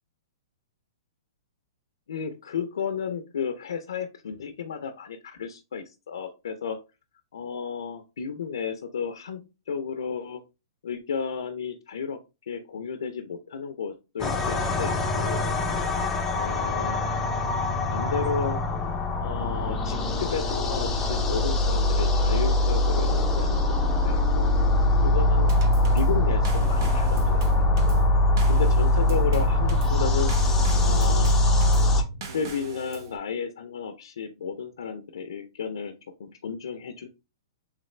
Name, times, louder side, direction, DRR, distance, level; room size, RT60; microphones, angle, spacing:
voice 1, 2.1-6.8 7.3-10.4 10.8-12.2 12.5-15.5 16.3-17.0 17.9-18.6 19.1-23.7 24.0-24.5 25.0-25.5 25.9-27.4 28.5-30.3 30.8-31.4 31.9-32.0 32.3-35.9 36.2-37.1, left 6 dB, 80° left, 7 dB, 0.5 m, -33 dB
sound 1, 14.2-32.0, left 2 dB, 15° left, 0.5 m, -23 dB
Drum kit / Snare drum / Bass drum, 25.5-33.2, right 3 dB, 60° right, 0.8 m, -38 dB
3.5 x 3.2 x 3.2 m, 0.27 s
hypercardioid pair, 145°, 2 cm